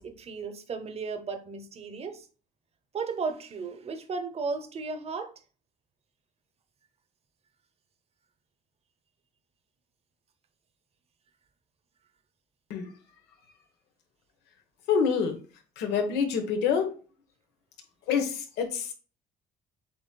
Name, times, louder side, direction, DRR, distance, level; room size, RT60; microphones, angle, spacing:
voice 1, 0.0-2.3 2.9-5.3, right 4 dB, 35° right, 0.8 m, -35 dB
voice 2, 14.9-15.4 15.8-16.9 18.1-18.9, left 6 dB, 85° left, 1.1 m, -26 dB
7.8 x 3.0 x 2.3 m
cardioid pair, 110°, 17 cm